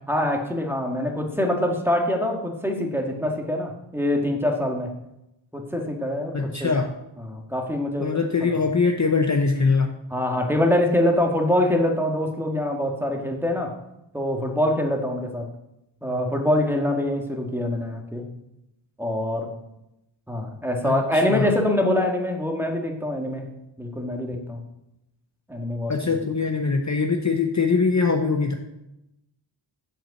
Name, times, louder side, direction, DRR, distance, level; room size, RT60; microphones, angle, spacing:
voice 1, 0.1-4.9 5.5-6.8 7.2-8.5 10.1-13.7 14.1-15.5 16.0-18.3 19.0-19.5 20.3-23.5 23.8-24.6 25.5-26.2, left 1 dB, 5° right, 1 dB, 1.6 m, -24 dB
voice 2, 6.3-6.9 8.0-9.9 20.8-21.0 21.3-21.5 25.9-28.5, left 4 dB, 40° left, 4 dB, 0.7 m, -22 dB
7.3 x 5.6 x 7.0 m, 0.87 s
wide cardioid pair, 60°, 47 cm